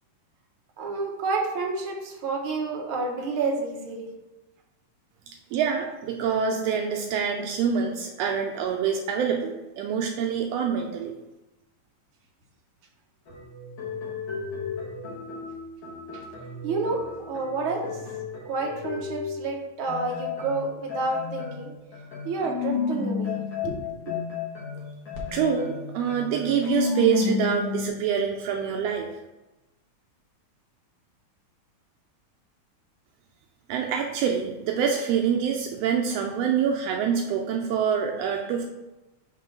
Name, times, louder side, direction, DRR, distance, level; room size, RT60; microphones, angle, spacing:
voice 1, 0.8-4.1 16.6-17.0 17.3-17.9 18.5-21.7 22.2-23.3 23.6-23.8 24.1-24.2, right 3 dB, 60° right, 0 dB, 1.5 m, -29 dB
voice 2, 5.5-11.1 25.3-29.1 33.7-38.6, right 7 dB, 85° right, 2 dB, 1.4 m, -26 dB
sound 1, 13.3-19.5 19.9-27.9, left 5 dB, 50° left, 1.6 m, -32 dB
7.2 x 3.0 x 5.5 m, 1.0 s
omnidirectional pair, 3.4 m